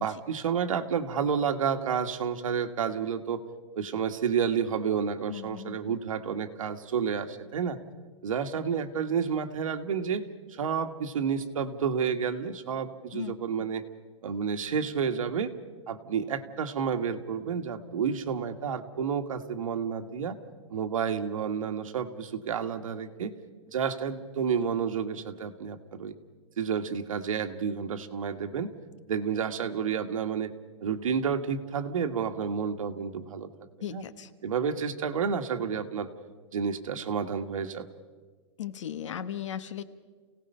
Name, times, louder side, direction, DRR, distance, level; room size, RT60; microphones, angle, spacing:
voice 1, 0.0-3.4 3.7-7.8 8.2-13.8 14.2-15.5 15.9-20.4 20.7-23.4 23.7-26.1 26.6-28.7 29.1-30.5 30.8-33.5 33.9-34.0 34.4-36.1 36.5-37.9, right 7 dB, 90° right, 7 dB, 1.7 m, -30 dB
voice 2, 5.3-6.0 13.1-13.4 33.8-34.3 38.6-39.8, left 10 dB, 65° left, 13 dB, 1.2 m, -37 dB
29.5 x 17.5 x 5.6 m, 1.4 s
hypercardioid pair, 175°, 17 cm